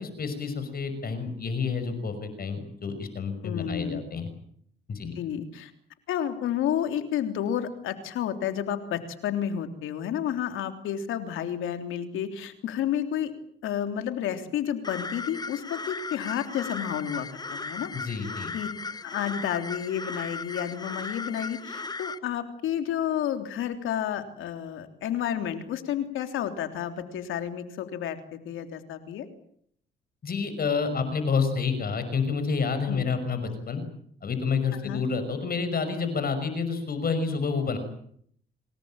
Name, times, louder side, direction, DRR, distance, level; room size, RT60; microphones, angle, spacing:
voice 1, 0.0-4.3 4.9-5.1 17.9-18.5 30.2-33.8 34.2-37.8, left 5 dB, 50° left, 10 dB, 6.0 m, -29 dB
voice 2, 3.4-4.0 5.1-5.7 6.1-13.3 13.6-17.9 18.5-18.7 19.0-29.3 32.9-33.1 34.8-35.0, left 9 dB, 85° left, 8 dB, 3.3 m, -31 dB
sound 1, 14.8-22.2, left 3 dB, 20° left, 1.2 m, -36 dB
27.0 x 19.5 x 8.9 m, 0.67 s
cardioid pair, 90°, 20 cm